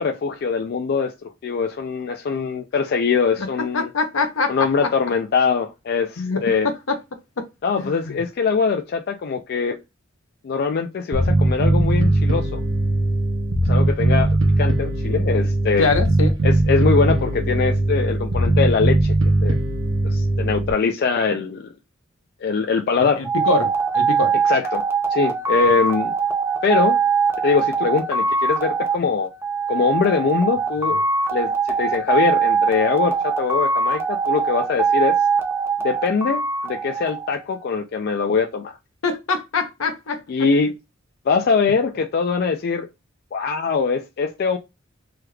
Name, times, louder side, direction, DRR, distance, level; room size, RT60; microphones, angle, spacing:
voice 1, 0.0-3.9 4.5-6.7 7.6-9.8 10.4-12.6 13.7-15.9 16.4-19.1 19.4-19.6 20.0-21.7 22.4-23.2 24.4-24.8 25.1-26.1 26.6-27.0 27.4-29.3 29.7-31.0 31.3-35.2 35.8-38.8 40.3-40.7 41.3-42.9 43.3-44.6, left 5 dB, 50° left, 0.3 m, -22 dB
voice 2, 3.7-4.9 6.2-7.0 7.8-8.2 15.8-16.3 23.2-23.7 23.9-24.3 39.0-40.5, left 3 dB, 80° left, 0.8 m, -24 dB
Bass guitar, 11.1-20.7, right 1 dB, 65° right, 0.7 m, -19 dB
sound 1, 23.2-37.7, right 5 dB, 10° right, 0.5 m, -22 dB
3.3 x 3.2 x 2.3 m
head